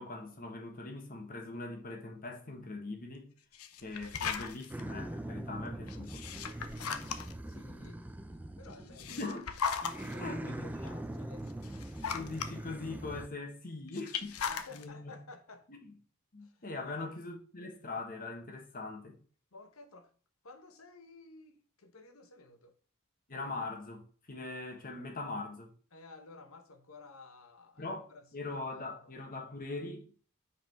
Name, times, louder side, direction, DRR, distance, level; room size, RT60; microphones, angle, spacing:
voice 1, 0.0-3.3 3.8-6.2 9.2-9.5 9.9-10.6 11.9-14.4 14.7-15.2 15.7-15.9 16.3-19.2 23.3-25.7 27.8-30.0, left 3 dB, 40° left, 1.5 m, -41 dB
sound 1, 3.5-4.8 5.9-7.5 8.7-10.1 10.9-11.0 11.5-12.5 13.9-14.8, left 6 dB, 90° left, 0.7 m, -37 dB
sound 2, 4.7-9.4 9.8-13.3, right 1 dB, 5° right, 0.5 m, -42 dB
voice 2, 7.5-8.1 8.6-9.2 9.9-11.8 14.5-15.7 16.4-17.1 19.5-20.1 20.4-22.7 25.9-29.1, left 3 dB, 70° left, 1.2 m, -54 dB
5.7 x 4.9 x 4.6 m
head